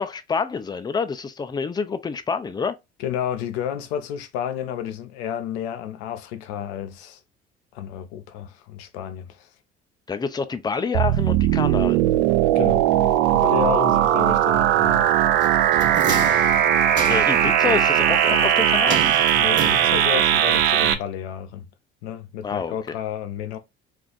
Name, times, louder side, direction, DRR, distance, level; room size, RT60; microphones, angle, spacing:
voice 1, 0.0-2.8 10.1-12.0 17.1-19.1 22.4-22.9, left 5 dB, 15° left, 0.4 m, -27 dB
voice 2, 3.0-7.2 7.7-9.5 12.5-12.9 13.3-15.1 15.9-16.5 19.4-21.7 22.0-23.6, left 9 dB, 75° left, 0.6 m, -31 dB
sound 1, 10.9-20.9, right 10 dB, 65° right, 0.5 m, -19 dB
sound 2, 15.4-17.5 18.9-20.3 20.6-20.7, right 5 dB, 35° right, 1.3 m, -32 dB
2.6 x 2.4 x 3.7 m
hypercardioid pair, 60°, 33 cm